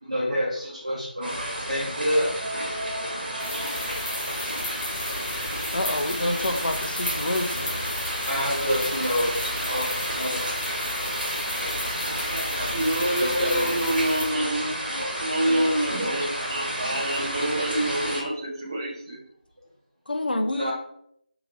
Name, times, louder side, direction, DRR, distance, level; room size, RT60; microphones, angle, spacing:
voice 1, 0.0-2.3 8.3-9.3 9.6-10.7 13.2-13.8 15.2-15.9 17.5-17.6 20.5-20.7, equal, 45° right, -5 dB, 1.2 m, -28 dB
sound 1, 1.2-18.2, equal, 65° right, 1.4 m, -31 dB
sound 2, 3.4-14.3, left 1 dB, 10° left, 0.3 m, -33 dB
voice 2, 5.7-7.7 20.1-20.7, left 1 dB, 65° left, 5 dB, 0.6 m, -27 dB
voice 3, 12.1-19.2, right 1 dB, 25° right, -3 dB, 0.7 m, -27 dB
4.8 x 2.9 x 2.5 m, 0.70 s
figure-of-eight pair, 170°, 5 cm